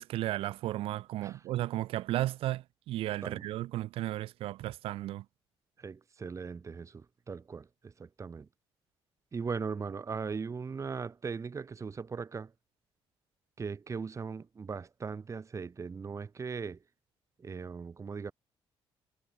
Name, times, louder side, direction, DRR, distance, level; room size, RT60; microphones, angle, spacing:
voice 1, 0.0-5.2, right 15 dB, 90° right, 3.2 m, -34 dB
voice 2, 5.8-8.5 9.3-12.5 13.6-16.8 17.4-18.3, right 5 dB, 35° right, 1.4 m, -39 dB
cardioid pair, 95°, 9 cm